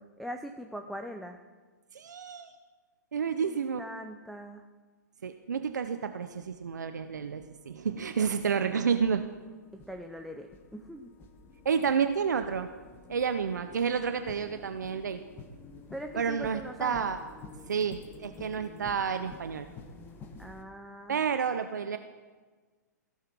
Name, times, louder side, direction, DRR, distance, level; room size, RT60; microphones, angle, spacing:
voice 1, 0.0-1.4 3.4-4.6 9.9-11.1 15.9-17.1 20.4-21.2, equal, ahead, 4 dB, 0.5 m, -41 dB
voice 2, 1.9-2.5 3.1-3.8 5.2-9.3 11.6-12.7 13.1-15.2 16.2-17.2 17.7-19.7 21.1-22.0, right 6 dB, 75° right, 9 dB, 0.6 m, -30 dB
sound 1, 5.5-5.6 6.3-20.6, left 3 dB, 20° left, 1.2 m, -51 dB
16.0 x 5.7 x 6.0 m, 1.4 s
figure-of-eight pair, 120°, 10 cm